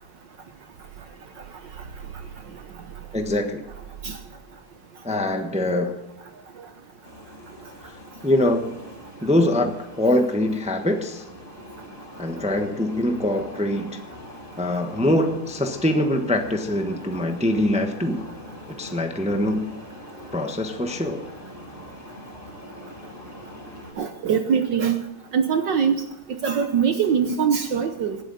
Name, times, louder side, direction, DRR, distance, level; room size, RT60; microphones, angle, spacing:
voice 1, 3.1-3.6 5.0-6.0 7.8-7.9 8.2-8.7 9.2-11.2 12.2-14.0 14.6-18.2 18.7-19.7 20.3-21.2, left 1 dB, 5° right, 5 dB, 0.7 m, -23 dB
sound 1, 7.0-23.9, equal, 25° left, 4.8 m, -42 dB
voice 2, 24.0-25.0 25.3-26.0 26.3-28.2, right 7 dB, 60° right, 7 dB, 1.4 m, -22 dB
19.0 x 12.5 x 4.2 m, 0.96 s
omnidirectional pair, 2.4 m